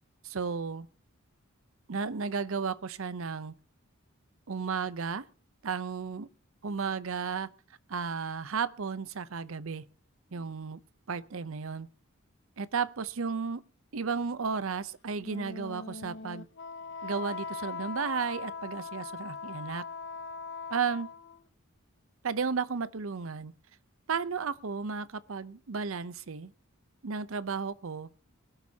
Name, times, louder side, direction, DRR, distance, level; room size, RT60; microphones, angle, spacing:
voice 1, 0.2-0.9 1.9-3.5 4.5-5.2 5.6-6.3 6.6-7.5 7.9-9.8 10.3-10.8 11.1-11.9 12.6-13.6 13.9-16.5 17.0-19.8 20.7-21.1 22.2-23.5 24.1-26.5 27.0-28.1, right 5 dB, 70° right, 0.7 m, -33 dB
Wind instrument woodwind instrument, 15.2-21.4, left 4 dB, 55° left, 0.8 m, -40 dB
21.5 x 12.5 x 2.8 m
head